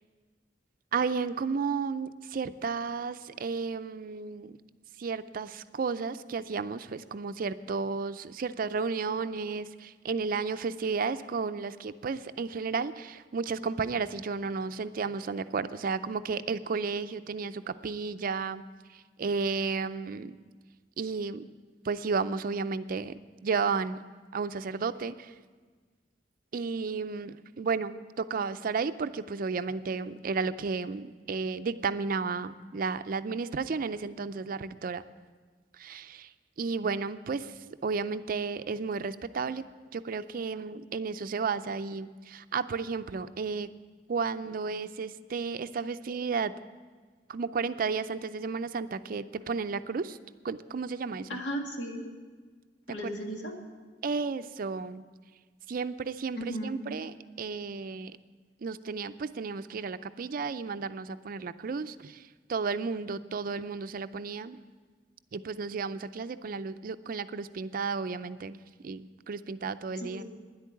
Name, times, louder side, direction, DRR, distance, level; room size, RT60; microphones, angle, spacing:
voice 1, 0.9-4.6 5.0-18.6 18.9-20.4 21.0-21.5 21.8-24.0 24.3-25.3 26.5-35.0 35.8-36.3 36.6-37.5 37.8-39.6 39.9-43.7 44.1-46.5 47.3-50.2 50.4-51.4 54.0-55.1 55.7-58.1 58.6-64.6 65.3-68.6 68.8-70.2, right 5 dB, 50° right, 12 dB, 0.4 m, -33 dB
voice 2, 51.3-52.0 52.9-53.5 56.3-56.8 70.0-70.2, equal, 80° left, 2 dB, 1.9 m, -36 dB
10.5 x 8.4 x 9.2 m, 1.5 s
head